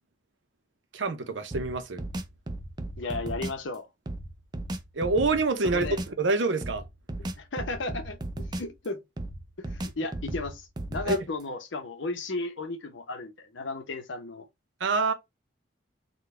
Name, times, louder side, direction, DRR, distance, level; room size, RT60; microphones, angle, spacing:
voice 1, 0.9-2.0 4.9-6.8 11.1-11.2 14.8-15.1, right 3 dB, 80° right, 0.7 m, -26 dB
sound 1, 1.5-3.6 4.1-6.2 6.6-8.9 9.2-11.4, right 1 dB, 20° right, 0.3 m, -36 dB
voice 2, 3.0-3.9 5.7-6.0 7.2-9.0 9.7-14.4, left 3 dB, 80° left, 0.8 m, -34 dB
3.8 x 2.2 x 3.2 m
head